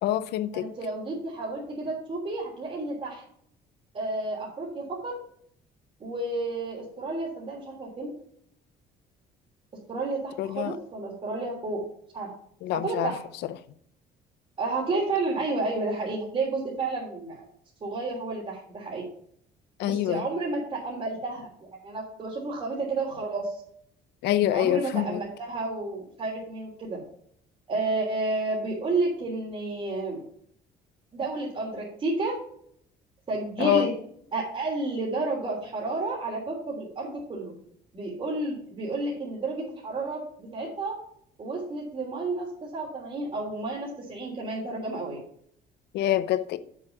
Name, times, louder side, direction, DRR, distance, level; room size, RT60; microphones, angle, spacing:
voice 1, 0.0-0.7 10.4-10.8 12.6-13.1 19.8-20.2 24.2-25.2 33.6-33.9 45.9-46.6, left 12 dB, 80° left, 0.7 m, -25 dB
voice 2, 0.5-3.2 3.9-5.1 6.0-8.1 9.9-11.8 12.1-12.3 12.7-13.2 14.6-17.4 17.8-19.0 19.8-23.6 24.5-27.0 27.7-30.2 31.1-32.3 33.3-33.9 34.3-37.5 37.9-40.9 41.4-45.2, right 3 dB, 35° right, 3.4 m, -31 dB
7.7 x 7.3 x 5.9 m
cardioid pair, 110°, 17 cm